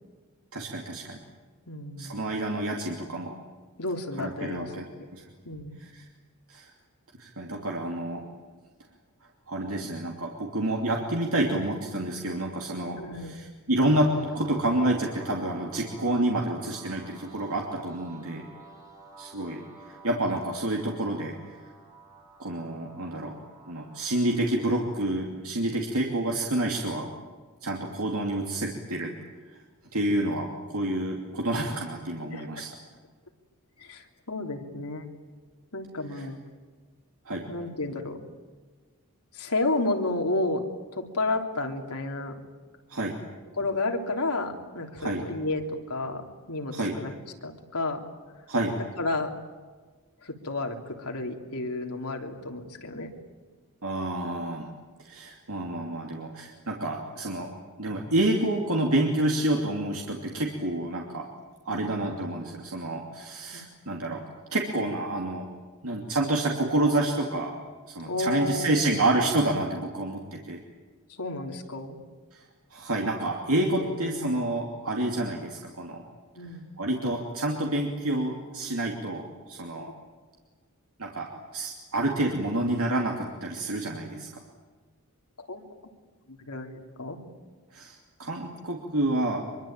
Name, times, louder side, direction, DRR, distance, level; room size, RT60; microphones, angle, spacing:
voice 1, 0.5-1.2 2.0-3.4 4.2-5.2 5.8-6.0 6.5-6.7 7.2-8.3 9.5-18.4 19.2-21.6 22.4-23.3 23.7-27.1 27.6-29.1 29.9-32.7 36.1-36.3 37.3-37.5 42.9-43.2 45.0-45.2 46.7-46.9 48.5-48.8 53.8-54.7 55.0-57.5 57.8-61.3 61.6-64.2 64.5-65.5 65.8-67.6 67.9-70.6 72.3-72.4 72.7-76.0 76.8-79.9 81.0-81.3 81.5-84.4 87.7-89.5, right 1 dB, 70° right, 0 dB, 2.8 m, -28 dB
voice 2, 1.7-2.2 3.8-4.7 5.4-5.8 13.0-13.3 32.3-32.5 33.8-35.0 35.7-36.4 37.5-38.2 39.3-42.4 43.6-47.1 47.4-48.1 48.7-49.3 50.2-53.1 61.7-61.9 63.5-63.6 68.0-68.9 71.2-72.0 73.8-74.4 76.3-76.7 85.4-85.6 86.3-87.2, left 2 dB, 80° left, 3 dB, 3.3 m, -32 dB
sound 1, 14.0-24.7, right 3 dB, 15° right, 7.3 m, -48 dB
25.0 x 23.5 x 9.0 m, 1.4 s
head